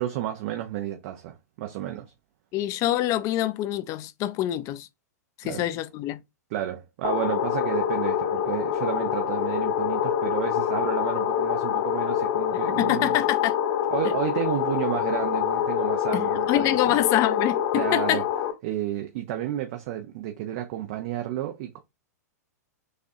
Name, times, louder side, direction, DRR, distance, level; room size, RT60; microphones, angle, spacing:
voice 1, 0.0-2.1 5.4-5.6 6.5-13.2 13.9-17.0 17.7-18.2 18.6-21.8, right 12 dB, 50° right, 0.6 m, -31 dB
voice 2, 2.5-4.9 5.4-6.2 12.8-13.6 16.1-18.2, left 13 dB, 35° left, 0.4 m, -26 dB
sound 1, 7.0-18.5, left 9 dB, 55° left, 1.0 m, -26 dB
6.4 x 2.4 x 2.7 m
hypercardioid pair, 105°, 9 cm